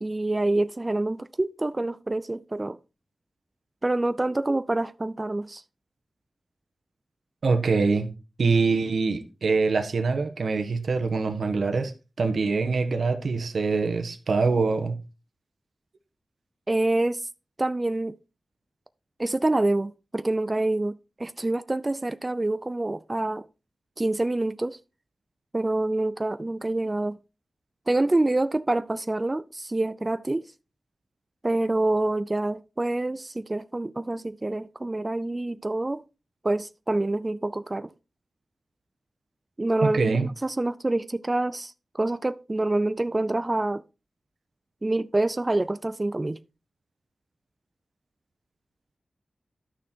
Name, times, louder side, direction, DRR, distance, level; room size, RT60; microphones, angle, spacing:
voice 1, 0.0-2.8 3.8-5.6 16.7-17.3 17.6-18.2 19.2-23.5 24.0-24.8 25.5-27.2 27.9-30.5 31.4-36.0 36.4-37.9 39.6-43.8 44.8-46.4, right 2 dB, 25° right, 0.4 m, -26 dB
voice 2, 7.4-8.1 8.4-11.9 12.2-15.0 39.8-40.3, right 4 dB, 80° right, 1.3 m, -24 dB
11.5 x 6.3 x 4.4 m
wide cardioid pair, 110°, 0 cm